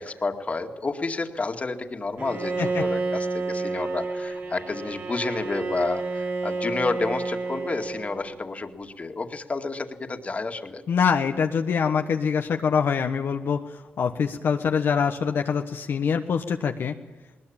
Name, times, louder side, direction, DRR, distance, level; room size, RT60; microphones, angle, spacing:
voice 1, 0.0-10.8, left 3 dB, 35° left, 6 dB, 2.2 m, -30 dB
Bowed string instrument, 2.2-8.5, right 3 dB, 65° right, 5.0 m, -30 dB
voice 2, 10.9-13.6 14.0-16.9, left 6 dB, 70° left, 5 dB, 1.2 m, -24 dB
20.5 x 20.0 x 8.8 m, 1.2 s
cardioid pair, 75°, 4 cm